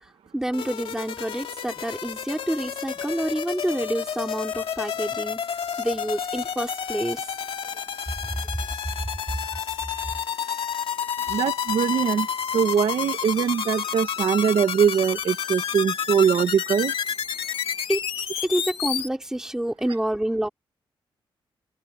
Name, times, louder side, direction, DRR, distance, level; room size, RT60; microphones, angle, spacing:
voice 1, 0.0-5.4 5.8-7.3 9.5-9.6 17.9-18.0 18.4-20.5, right 1 dB, 5° right, 4.1 m, -28 dB
sound 1, 0.5-19.1, left 8 dB, 85° left, 2.5 m, -30 dB
voice 2, 11.3-12.3 12.5-16.9, right 7 dB, 75° right, 1.0 m, -22 dB
open air
wide cardioid pair, 180°, 9 cm